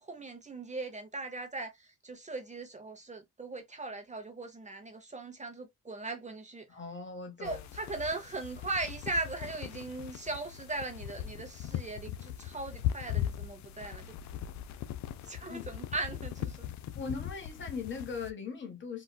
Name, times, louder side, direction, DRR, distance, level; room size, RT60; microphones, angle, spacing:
voice 1, 0.0-6.7 7.4-14.1 15.2-16.7, right 2 dB, 25° right, 0.7 m, -39 dB
voice 2, 6.7-7.6 15.5-15.7 17.0-19.0, left 5 dB, 40° left, 1.2 m, -39 dB
sound 1, 7.4-18.3, left 11 dB, 65° left, 0.5 m, -39 dB
3.8 x 2.3 x 2.2 m
cardioid pair, 90°, 30 cm